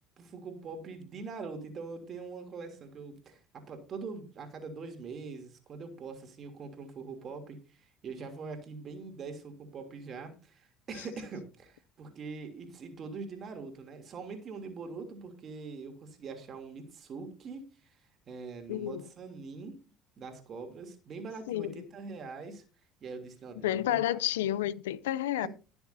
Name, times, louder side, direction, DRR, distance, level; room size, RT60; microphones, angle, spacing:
voice 1, 0.2-17.9 18.3-19.7 20.2-22.6 23.0-24.2 25.4-25.5, right 4 dB, 45° right, 3.0 m, -43 dB
voice 2, 18.7-19.0 21.5-21.9 23.6-25.5, left 13 dB, 85° left, 0.5 m, -30 dB
20.0 x 6.9 x 2.7 m
hypercardioid pair, 75°, 0 cm